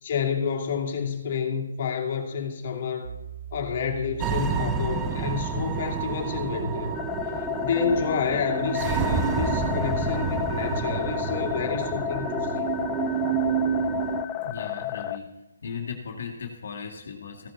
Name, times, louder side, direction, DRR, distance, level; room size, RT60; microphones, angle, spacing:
voice 1, 0.0-3.1 3.5-7.0 7.6-12.6, left 6 dB, 45° left, 1 dB, 2.6 m, -29 dB
Piano, 3.0-8.6, right 10 dB, 70° right, 1.0 m, -43 dB
sound 1, 4.2-14.2, right 6 dB, 15° right, 0.9 m, -29 dB
sound 2, 6.9-15.2, left 13 dB, 20° left, 0.6 m, -32 dB
voice 2, 14.4-15.3 15.6-17.5, left 6 dB, 60° left, 2 dB, 2.2 m, -36 dB
16.0 x 11.5 x 4.0 m, 1.0 s
hypercardioid pair, 155°, 0 cm